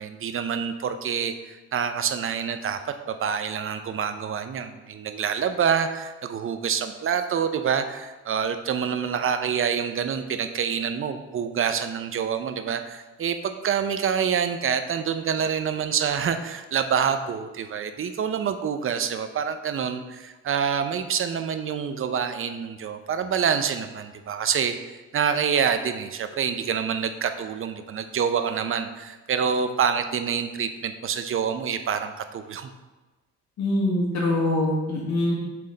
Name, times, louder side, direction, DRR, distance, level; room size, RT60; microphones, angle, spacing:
voice 1, 0.0-32.7, right 7 dB, 45° right, 9 dB, 0.6 m, -27 dB
voice 2, 33.6-35.3, left 1 dB, 65° left, -5 dB, 1.9 m, -23 dB
7.7 x 3.6 x 3.9 m, 1.2 s
cardioid pair, 90°, 30 cm